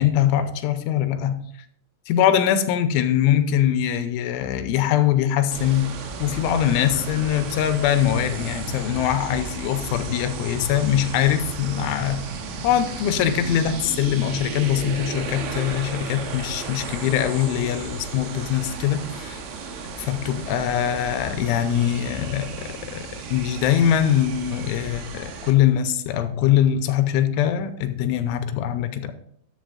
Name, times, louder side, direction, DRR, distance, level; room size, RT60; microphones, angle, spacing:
voice 1, 0.0-1.4 2.1-5.9 6.2-12.2 12.6-19.4 20.0-23.0 23.3-29.1, left 10 dB, 85° left, 9 dB, 3.1 m, -22 dB
sound 1, 5.5-25.5, right 4 dB, 80° right, 3.8 m, -34 dB
11.5 x 8.0 x 3.8 m, 0.68 s
omnidirectional pair, 5.6 m